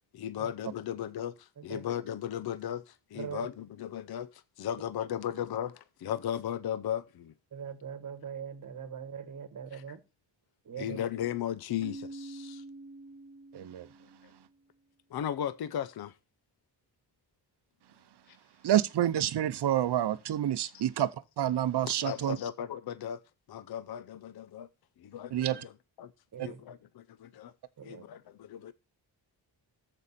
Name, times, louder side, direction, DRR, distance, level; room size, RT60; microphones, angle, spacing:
voice 1, 0.1-7.3 10.8-12.6 15.1-16.1 18.3-18.4 21.9-23.2 23.5-24.7 25.0-25.3 26.0-26.1 26.4-27.5 27.8-28.7, left 10 dB, 60° left, 0.6 m, -36 dB
voice 2, 1.6-1.9 3.1-3.5 7.5-10.0 10.6-11.0 26.3-26.6 27.8-28.0, right 7 dB, 45° right, 1.3 m, -41 dB
Keyboard (musical), 11.8-14.5, right 2 dB, 30° right, 0.5 m, -46 dB
voice 3, 13.5-14.5 18.6-22.4 25.3-25.7 26.4-26.5, right 11 dB, 65° right, 0.7 m, -29 dB
14.0 x 5.4 x 4.2 m
wide cardioid pair, 175°, 44 cm